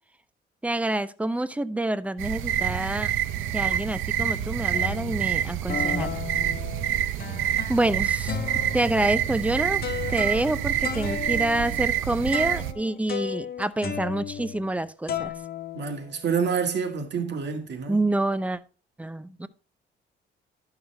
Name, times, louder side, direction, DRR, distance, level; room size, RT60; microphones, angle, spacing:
voice 1, 0.6-3.1 3.5-6.2 7.7-8.4 8.7-9.8 10.1-15.3 17.9-18.6 19.0-19.5, right 1 dB, 5° right, 0.6 m, -27 dB
sound 1, 2.2-12.7, right 11 dB, 85° right, 0.7 m, -27 dB
sound 2, 3.7-3.8 4.2-5.3 5.7-7.9 8.3-14.8 15.1-16.5, left 8 dB, 50° left, 1.3 m, -35 dB
voice 2, 15.7-18.0, right 6 dB, 60° right, 2.0 m, -28 dB
11.0 x 5.8 x 3.4 m
cardioid pair, 90°, 20 cm